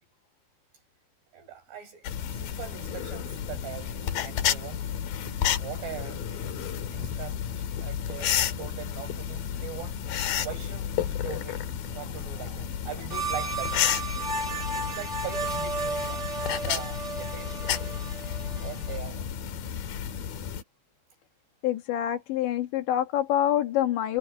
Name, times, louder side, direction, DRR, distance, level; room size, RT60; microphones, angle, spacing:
voice 1, 1.3-2.1 2.4-4.8 5.6-6.5 6.9-10.0 10.4-14.1 14.7-17.8 18.6-19.3, right 9 dB, 70° right, 9.9 m, -41 dB
sound 1, 2.0-20.6, left 9 dB, 60° left, 3.2 m, -32 dB
sound 2, 13.1-19.0, right 3 dB, 15° right, 8.1 m, -33 dB
voice 2, 21.6-24.2, left 11 dB, 90° left, 4.3 m, -26 dB
omnidirectional pair, 5.0 m